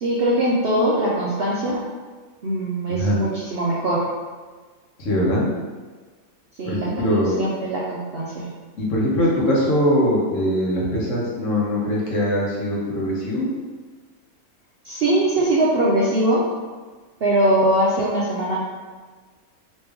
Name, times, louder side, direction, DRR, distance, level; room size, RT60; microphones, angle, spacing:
voice 1, 0.0-1.8 2.4-4.0 6.6-8.5 14.8-16.4 17.2-18.6, right 1 dB, 60° right, -5 dB, 0.6 m, -21 dB
voice 2, 5.0-5.4 6.6-7.4 8.8-13.5, equal, 65° left, -4 dB, 1.2 m, -21 dB
3.2 x 3.0 x 3.4 m, 1.4 s
omnidirectional pair, 1.5 m